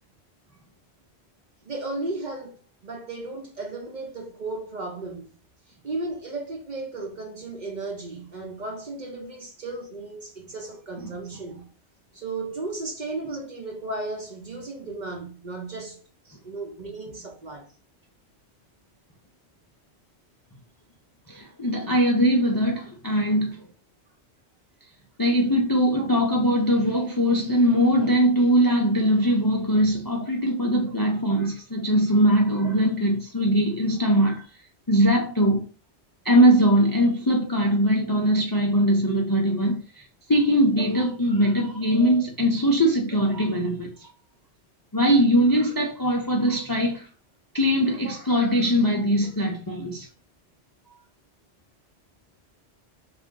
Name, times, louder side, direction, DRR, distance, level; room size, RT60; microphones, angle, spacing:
voice 1, 1.6-5.3 5.8-11.6 12.1-16.0 16.4-17.7 26.0-26.1 48.0-48.2, right 2 dB, 45° right, 0.8 m, -35 dB
voice 2, 21.3-23.7 25.2-34.4 34.9-35.6 36.2-43.9 44.9-47.1 47.5-50.1, equal, 25° left, 0.5 m, -21 dB
3.7 x 2.5 x 3.7 m
omnidirectional pair, 1.1 m